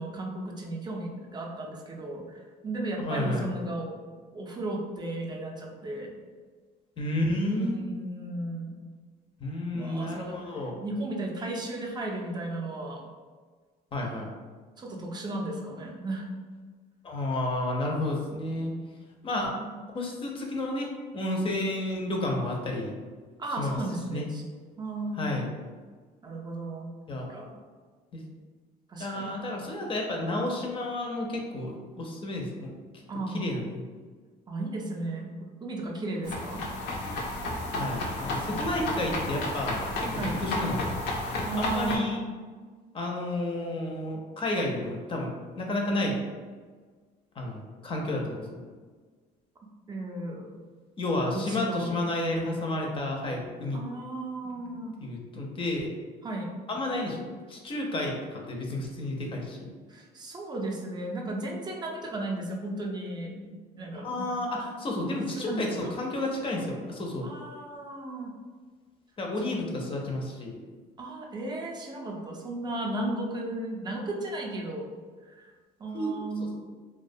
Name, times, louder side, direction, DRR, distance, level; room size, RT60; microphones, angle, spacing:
voice 1, 0.0-3.9 4.3-6.1 7.5-8.8 9.7-13.0 14.8-16.3 19.5-19.9 23.4-24.4 24.8-25.4 26.2-26.9 27.3-27.5 28.9-29.4 33.1-33.5 34.5-36.7 38.4-38.7 40.1-40.4 41.5-42.1 49.9-50.6 51.3-52.0 53.7-54.9 56.2-56.6 59.9-64.3 65.4-66.0 67.2-68.3 69.4-69.7 71.0-74.9 75.2-75.5 75.8-76.6, right 2 dB, 25° right, 0 dB, 0.4 m, -35 dB
voice 2, 3.0-3.5 7.0-7.8 9.4-10.8 13.9-14.3 17.0-18.7 19.2-19.5 19.9-20.9 21.1-23.0 23.6-23.7 24.1-24.3 25.1-25.5 27.1-27.3 28.1-28.2 29.0-32.7 33.3-33.8 37.7-41.0 41.6-42.2 42.9-46.2 47.4-48.6 51.0-53.8 54.4-55.9 56.7-59.7 64.0-67.3 69.2-70.6 75.9-76.5, left 1 dB, 30° left, 0 dB, 0.5 m, -31 dB
sound 1, 36.2-42.0, left 2 dB, 85° left, 0.5 m, -32 dB
2.3 x 2.1 x 2.6 m, 1.5 s
cardioid pair, 110°, 17 cm